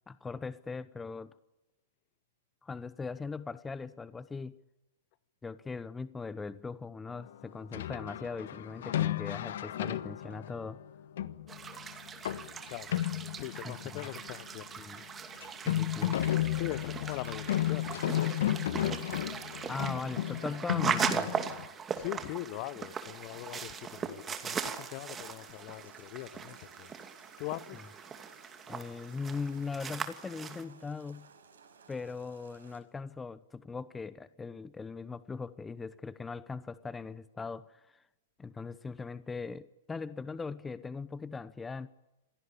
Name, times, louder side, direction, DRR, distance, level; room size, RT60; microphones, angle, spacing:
voice 1, 0.1-1.3 2.6-4.6 5.4-10.8 13.6-14.0 14.8-15.0 15.6-16.2 19.7-21.4 28.7-31.3 31.9-38.0 38.4-41.9, left 4 dB, 10° left, 0.8 m, -40 dB
sound 1, 7.7-14.4 14.7-14.8 15.0-15.1 15.4-21.7, left 12 dB, 65° left, 1.3 m, -33 dB
sound 2, 11.5-30.6, right 6 dB, 20° right, 2.5 m, -39 dB
voice 2, 13.4-14.8 16.5-18.3 21.9-26.9 27.4-27.8, left 17 dB, 45° left, 1.1 m, -41 dB
sound 3, 23.5-32.8, right 5 dB, 75° right, 5.6 m, -59 dB
27.0 x 17.5 x 8.7 m
hypercardioid pair, 115°, 0 cm